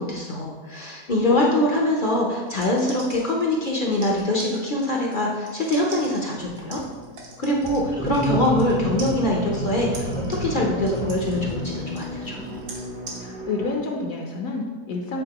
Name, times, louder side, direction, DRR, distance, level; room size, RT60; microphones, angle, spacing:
voice 1, 0.0-6.8 7.4-12.4, left 1 dB, 50° left, -2 dB, 0.6 m, -23 dB
sound 1, 2.5-8.7 9.0-13.2, right 3 dB, 70° right, 1.5 m, -42 dB
sound 2, 5.5-13.8, equal, 50° right, 0.9 m, -38 dB
sound 3, 6.4-6.8 7.6-12.6, right 1 dB, 5° right, 0.6 m, -31 dB
voice 2, 13.2-15.2, left 3 dB, 65° left, 1 dB, 1.0 m, -29 dB
8.8 x 4.1 x 2.9 m, 1.4 s
omnidirectional pair, 1.7 m